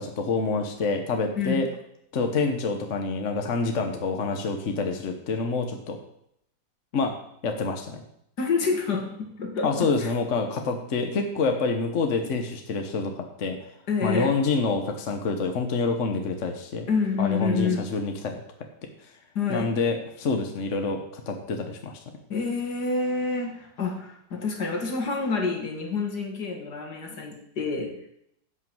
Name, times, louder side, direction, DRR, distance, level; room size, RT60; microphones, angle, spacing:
voice 1, 0.0-1.7 2.1-6.0 6.9-7.2 7.4-8.0 9.6-13.6 14.0-16.9 17.2-18.4 19.5-22.0, left 4 dB, 50° left, 4 dB, 1.3 m, -27 dB
voice 2, 1.4-1.7 8.4-10.1 13.9-14.3 16.9-17.9 19.4-19.7 22.3-28.1, left 4 dB, 65° left, 2 dB, 2.4 m, -28 dB
11.0 x 6.1 x 7.7 m, 0.75 s
omnidirectional pair, 1.9 m